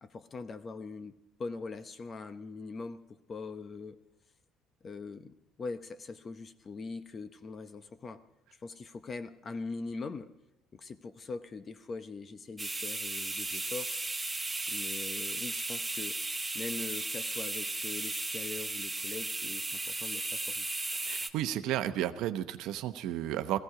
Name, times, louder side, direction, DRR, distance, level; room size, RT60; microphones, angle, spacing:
voice 1, 0.0-3.0 3.3-4.0 4.8-8.2 8.6-10.3 10.7-13.9 14.7-16.2 16.5-20.7, left 4 dB, 30° left, 11 dB, 0.8 m, -42 dB
sound 1, 12.6-21.3, right 2 dB, 10° right, 0.7 m, -35 dB
voice 2, 21.0-23.6, right 12 dB, 75° right, 10 dB, 0.8 m, -33 dB
17.5 x 15.5 x 4.9 m, 0.92 s
cardioid pair, 150°, 0 cm